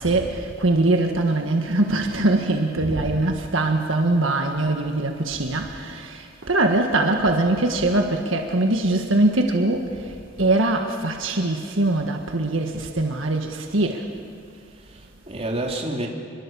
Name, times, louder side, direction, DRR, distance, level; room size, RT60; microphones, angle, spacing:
voice 1, 0.0-9.9 10.4-14.0, right 2 dB, 75° right, 3 dB, 1.7 m, -22 dB
voice 2, 2.8-3.2 14.9-16.1, right 1 dB, 30° right, -1 dB, 3.1 m, -30 dB
28.0 x 22.5 x 7.1 m, 2.3 s
head